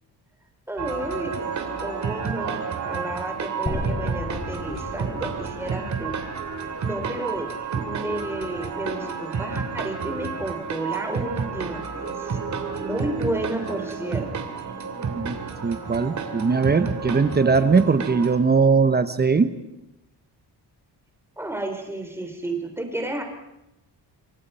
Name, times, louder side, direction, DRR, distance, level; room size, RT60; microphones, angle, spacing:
voice 1, 0.7-6.2 6.8-12.4 12.8-14.3 21.4-23.2, right 1 dB, 5° right, 5 dB, 3.6 m, -32 dB
sound 1, 0.8-18.4, right 5 dB, 45° right, 3.1 m, -31 dB
sound 2, 3.7-7.7, left 2 dB, 20° left, 6.1 m, -35 dB
voice 2, 15.6-19.5, right 4 dB, 25° right, 11 dB, 1.0 m, -20 dB
28.0 x 25.0 x 5.6 m, 0.90 s
wide cardioid pair, 155°, 41 cm